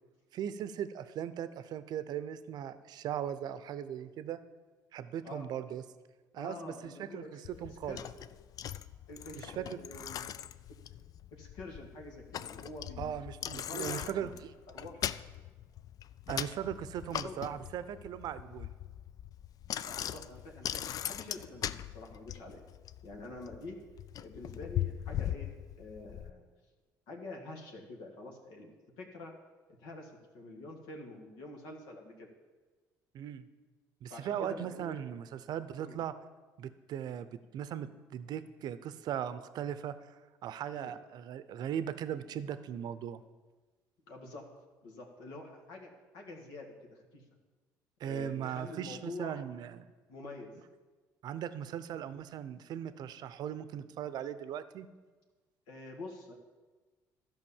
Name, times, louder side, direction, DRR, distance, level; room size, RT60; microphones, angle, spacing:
voice 1, 0.3-4.4 4.9-5.8 6.3-8.0 9.3-9.8 13.0-14.5 16.3-18.7 33.1-33.5 34.0-36.1 36.6-37.3 37.5-40.1 40.4-43.2 48.0-49.9 51.2-54.9, right 9 dB, 60° right, 13 dB, 0.6 m, -38 dB
voice 2, 6.3-7.4 7.9-8.0 9.1-10.3 11.4-13.1 13.5-14.3 14.7-15.1 17.1-17.4 19.8-22.6 23.0-23.8 24.2-26.5 27.1-28.7 29.0-29.3 29.8-32.3 34.1-35.0 35.8-36.0 40.7-40.9 44.1-44.4 44.8-47.2 48.0-49.4 50.1-50.5 55.7-56.3, left 2 dB, 75° left, 0 dB, 1.8 m, -47 dB
Bicycle, 7.4-26.3, left 11 dB, 50° left, 0.4 m, -40 dB
12.0 x 5.3 x 7.1 m, 1.3 s
supercardioid pair, 75°, 8 cm